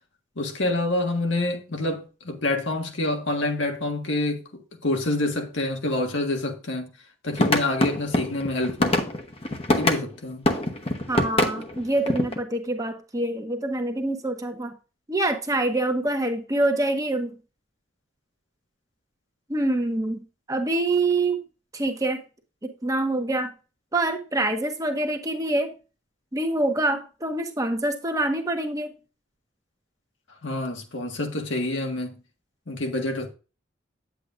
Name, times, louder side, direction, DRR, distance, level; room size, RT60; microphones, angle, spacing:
voice 1, 0.3-6.9 7.2-9.0 9.8-10.5 30.4-32.2 32.7-33.3, left 2 dB, 80° left, 1.7 m, -27 dB
sound 1, 7.3-10.0 10.5-12.4, left 1 dB, 30° left, 0.9 m, -24 dB
voice 2, 11.1-14.7 15.1-17.3 19.5-21.4 21.7-22.2 22.6-23.5 23.9-25.7 26.3-28.9, right 2 dB, 20° right, 1.0 m, -25 dB
9.3 x 8.0 x 2.5 m
head